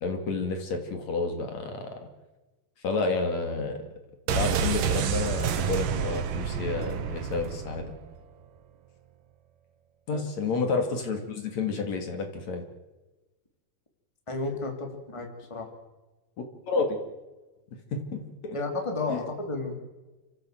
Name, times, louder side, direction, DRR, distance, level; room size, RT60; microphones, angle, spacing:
voice 1, 0.0-2.0 2.8-3.8 4.3-7.9 10.1-12.6 16.7-17.0 17.9-18.6 19.1-19.2, left 4 dB, 60° left, 5 dB, 3.5 m, -30 dB
sound 1, 4.3-8.1 8.3-8.4, right 7 dB, 90° right, 2.9 m, -29 dB
voice 2, 14.3-15.7 18.5-19.8, left 3 dB, 10° left, 3 dB, 2.7 m, -32 dB
29.5 x 15.0 x 7.8 m, 1.1 s
omnidirectional pair, 3.7 m